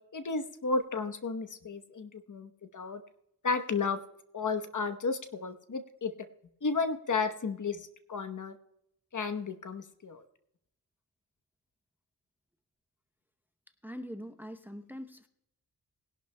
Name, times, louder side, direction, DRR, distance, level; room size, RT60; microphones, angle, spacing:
voice 1, 0.1-3.0 3.4-4.0 4.3-6.1 6.6-7.8 8.1-8.5 9.1-10.2, left 4 dB, 50° left, 9 dB, 1.0 m, -33 dB
voice 2, 13.8-15.3, equal, 5° right, 9 dB, 0.7 m, -43 dB
20.5 x 11.5 x 2.2 m, 0.79 s
wide cardioid pair, 80°, 38 cm